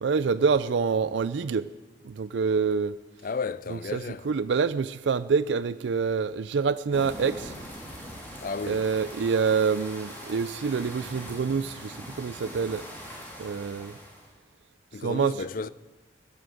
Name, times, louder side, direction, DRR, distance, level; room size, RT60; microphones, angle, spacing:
voice 1, 0.0-1.7 2.0-3.0 3.7-7.5 8.6-12.9 13.4-14.0 15.0-15.4, right 5 dB, 80° right, 0.4 m, -26 dB
voice 2, 3.2-4.3 8.4-8.9 14.9-15.7, left 4 dB, 45° left, 0.4 m, -33 dB
sound 1, 6.9-14.3, equal, 10° left, 3.3 m, -42 dB
15.5 x 11.5 x 7.7 m
head